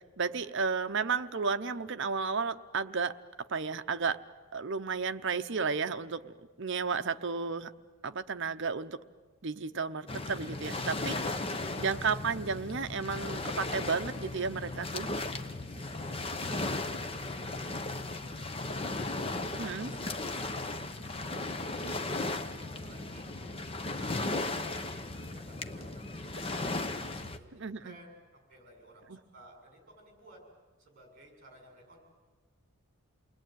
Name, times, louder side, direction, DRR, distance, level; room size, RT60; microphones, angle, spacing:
voice 1, 0.2-3.1 3.5-4.2 4.5-7.7 8.0-9.0 9.4-11.2 11.7-15.1 19.6-19.9 27.6-28.0 29.1-29.2, right 5 dB, 55° right, 9 dB, 0.8 m, -33 dB
Waves surf, 10.1-27.4, left 2 dB, 25° left, 0.9 m, -36 dB
voice 2, 15.5-16.8 17.2-20.4 21.1-23.3 23.8-26.8 27.1-30.4 30.8-32.0, right 1 dB, 35° right, 2 dB, 6.8 m, -56 dB
29.0 x 20.5 x 9.3 m, 1.4 s
head